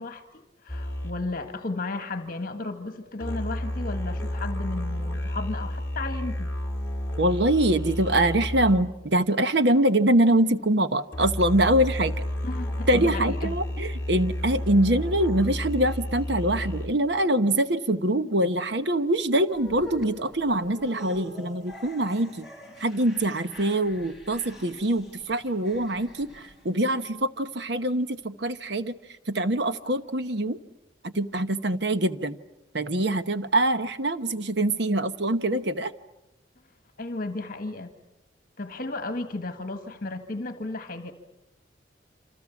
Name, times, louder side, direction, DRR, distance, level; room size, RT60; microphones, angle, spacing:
voice 1, 0.0-6.5 12.4-13.6 37.0-37.9 38.6-41.1, left 2 dB, 45° left, 8 dB, 1.6 m, -34 dB
sound 1, 0.7-9.1 11.1-16.9, left 1 dB, 15° left, 2.8 m, -31 dB
voice 2, 7.2-12.1 12.9-22.5 22.8-28.9 29.3-30.6 31.0-32.4 32.7-35.9, right 1 dB, 60° right, 11 dB, 1.1 m, -24 dB
sound 2, 19.5-26.9, equal, ahead, 5.6 m, -46 dB
28.0 x 27.0 x 7.2 m, 0.93 s
head